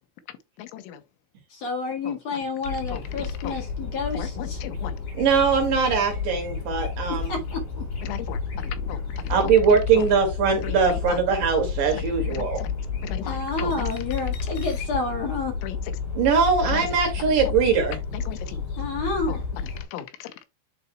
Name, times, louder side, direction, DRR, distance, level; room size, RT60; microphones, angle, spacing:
voice 1, 0.6-1.0 2.1-2.2 2.9-3.6 4.1-5.0 8.0-9.5 10.0-10.1 10.6-11.2 11.9-12.0 12.3-12.7 13.0-13.9 15.6-15.8 16.6-16.9 17.2-17.3 18.1-18.6 19.3-19.4 19.9-20.4, left 11 dB, 85° left, 3.3 m, -37 dB
voice 2, 1.5-4.6 7.1-8.1 13.2-15.6 18.8-19.4, left 3 dB, 50° left, 2.1 m, -30 dB
sound 1, 2.6-19.8, left 5 dB, 70° left, 6.6 m, -31 dB
voice 3, 5.1-7.4 9.3-12.6 16.1-18.0, right 6 dB, 55° right, 3.2 m, -21 dB
11.0 x 4.0 x 2.3 m
omnidirectional pair, 5.4 m